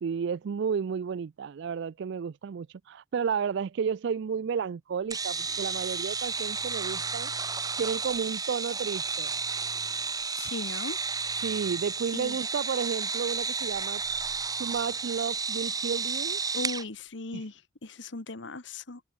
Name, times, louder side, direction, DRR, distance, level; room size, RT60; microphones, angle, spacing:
voice 1, 0.0-7.3 7.8-9.3 11.4-14.0 14.6-16.4 17.3-17.4, right 6 dB, 65° right, 0.4 m, -32 dB
sound 1, 5.1-16.8, right 5 dB, 20° right, 1.6 m, -32 dB
voice 2, 10.4-11.0 12.1-12.4 16.5-19.0, left 3 dB, 70° left, 1.5 m, -38 dB
head